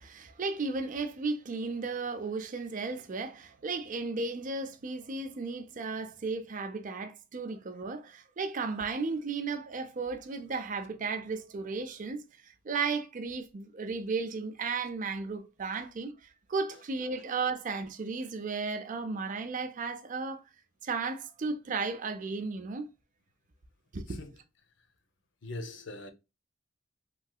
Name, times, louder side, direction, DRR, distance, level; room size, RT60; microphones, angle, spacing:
voice 1, 0.0-20.4 20.8-22.9 23.9-24.2, right 4 dB, 40° right, 0.4 m, -34 dB
voice 2, 25.4-26.1, left 2 dB, 65° left, 0.7 m, -41 dB
3.2 x 2.7 x 2.3 m
head